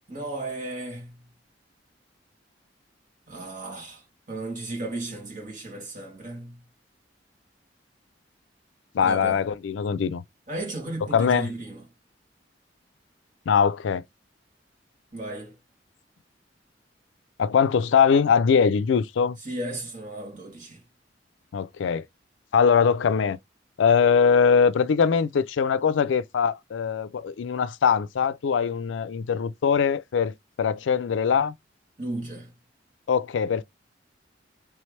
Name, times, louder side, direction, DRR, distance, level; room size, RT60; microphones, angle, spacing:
voice 1, 0.1-1.1 3.3-6.6 9.0-9.4 10.5-11.8 15.1-15.6 19.4-20.8 32.0-32.5, right 1 dB, 45° right, 2.2 m, -35 dB
voice 2, 8.9-10.2 11.1-11.5 13.5-14.0 17.4-19.4 21.5-22.0 22.5-23.4 23.8-31.5 33.1-33.6, left 6 dB, 90° left, 0.4 m, -22 dB
3.4 x 3.2 x 3.2 m
head